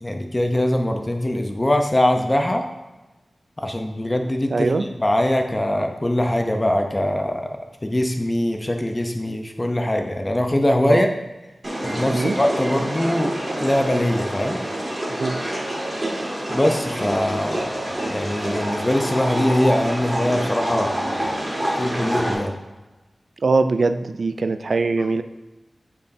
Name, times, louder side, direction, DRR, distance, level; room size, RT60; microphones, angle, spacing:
voice 1, 0.0-2.6 3.6-7.5 7.8-11.1 11.8-13.3 13.6-14.6 16.5-17.7 18.1-21.3 21.8-22.5, left 1 dB, 25° left, 4 dB, 0.6 m, -22 dB
voice 2, 4.5-4.9 10.9-11.1 12.1-12.4 15.2-15.4 23.4-25.2, right 3 dB, 70° right, 9 dB, 0.3 m, -21 dB
sound 1, 11.6-22.3, right 1 dB, 35° right, 2.0 m, -27 dB
8.2 x 4.6 x 2.7 m, 1.1 s
wide cardioid pair, 75°, 0 cm